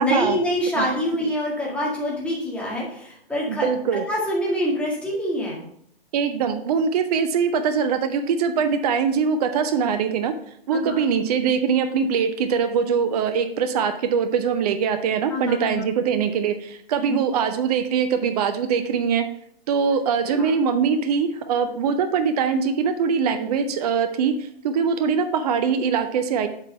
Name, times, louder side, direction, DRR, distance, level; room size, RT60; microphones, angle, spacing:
voice 1, 0.0-5.6 10.7-11.0 15.3-15.8 17.1-17.2 20.2-20.5, equal, 5° left, -4 dB, 2.0 m, -26 dB
voice 2, 3.5-4.0 6.1-10.3 10.7-19.2 19.7-26.5, right 6 dB, 40° right, 8 dB, 0.7 m, -22 dB
7.8 x 4.6 x 5.4 m, 0.69 s
hypercardioid pair, 135°, 30 cm